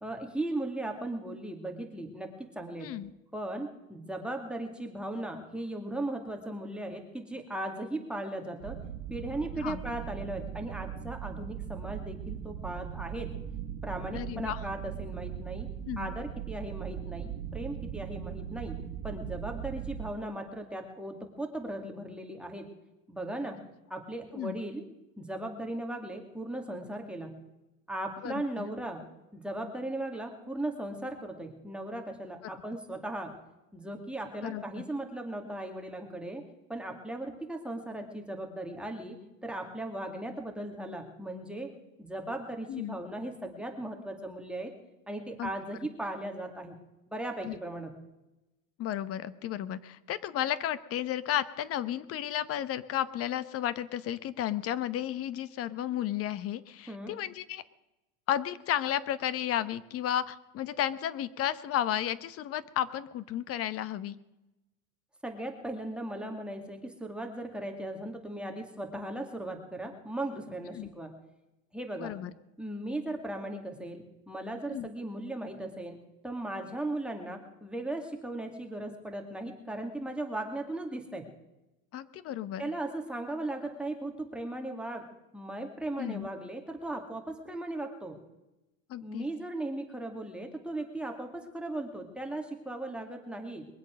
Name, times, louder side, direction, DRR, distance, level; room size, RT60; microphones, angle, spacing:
voice 1, 0.0-2.9 3.3-8.8 9.1-13.3 13.8-15.7 16.0-18.8 19.0-22.7 23.1-23.6 23.9-24.8 25.2-27.4 27.9-29.0 29.3-33.3 33.7-36.4 36.7-39.2 39.4-41.7 42.0-44.7 45.1-46.7 47.1-47.9 56.9-57.1 65.2-71.1 71.7-72.2 72.6-76.0 76.2-81.3 82.6-85.0 85.3-88.2 89.0-93.7, right 1 dB, ahead, 2 dB, 2.3 m, -37 dB
voice 2, 2.8-3.1 9.6-9.8 14.1-14.6 15.9-16.1 24.4-24.6 28.2-28.7 34.4-34.6 42.7-43.0 45.4-45.5 47.4-47.5 48.8-57.6 58.3-64.2 70.7-70.9 72.0-72.3 74.7-74.9 81.9-82.7 86.0-86.3 88.9-89.3, left 11 dB, 35° left, 16 dB, 0.9 m, -33 dB
sound 1, 8.6-20.1, right 9 dB, 75° right, 1.6 m, -39 dB
22.5 x 8.2 x 6.4 m, 0.96 s
supercardioid pair, 125°, 40 cm